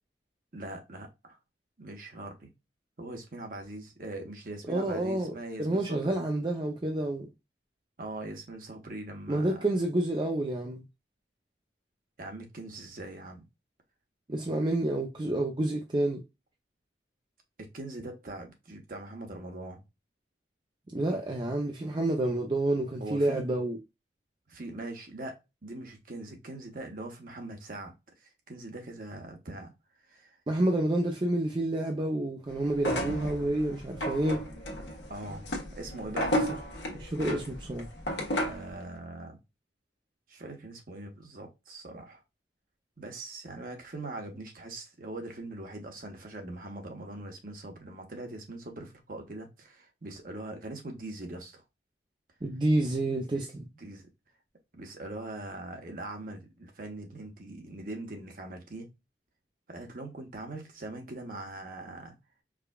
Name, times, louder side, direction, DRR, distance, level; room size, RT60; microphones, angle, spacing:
voice 1, 0.5-1.4 1.8-2.5 3.0-6.2 8.0-9.7 12.2-13.5 17.6-19.8 23.0-23.4 24.5-29.7 30.0-30.4 35.1-36.4 38.4-39.4 40.3-42.2 43.0-51.6 53.3-53.5 53.8-54.1 54.7-58.9 59.7-62.2, right 2 dB, 50° right, 1.0 m, -42 dB
voice 2, 4.7-7.3 9.3-10.8 14.3-16.2 20.9-23.8 30.5-34.4 36.9-37.9 52.4-53.7, right 1 dB, 25° right, 0.5 m, -29 dB
sound 1, 32.7-38.7, equal, 80° left, 1.1 m, -33 dB
4.8 x 2.3 x 2.2 m
head